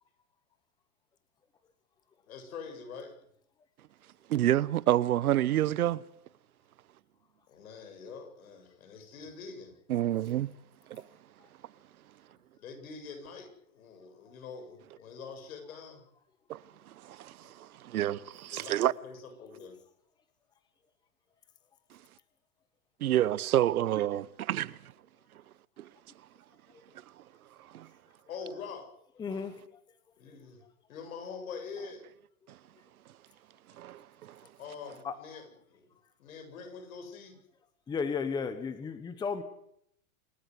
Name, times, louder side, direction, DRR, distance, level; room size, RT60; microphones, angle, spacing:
voice 1, 2.3-3.2 7.5-9.7 12.3-16.0 17.4-17.5 18.5-19.8 28.3-28.9 30.2-30.6 30.9-32.0 34.6-35.9 36.2-37.4, left 5 dB, 75° left, 7.8 m, -45 dB
voice 2, 4.3-6.0 9.9-10.5 10.9-11.0 16.5-16.6 17.0-18.9 23.0-24.8 25.8-25.9 27.7-27.9 33.8-34.4, right 13 dB, 85° right, 1.0 m, -28 dB
voice 3, 29.2-29.6 30.3-30.4 35.0-35.2 37.9-39.4, left 5 dB, 10° left, 1.1 m, -34 dB
27.0 x 12.5 x 9.6 m
supercardioid pair, 155°, 42 cm